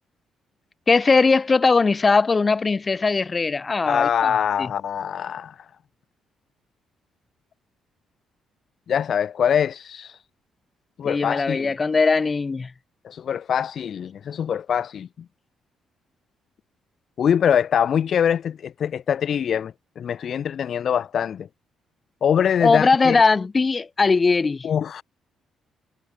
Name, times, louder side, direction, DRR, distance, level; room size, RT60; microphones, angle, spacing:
voice 1, 0.9-4.7 11.0-12.7 22.6-24.7, left 4 dB, 30° left, 4.9 m, -20 dB
voice 2, 3.8-5.5 8.9-10.2 11.0-11.7 13.0-15.1 17.2-21.5 22.2-23.2 24.6-25.0, left 8 dB, 60° left, 1.3 m, -23 dB
cardioid pair, 90°, 0 cm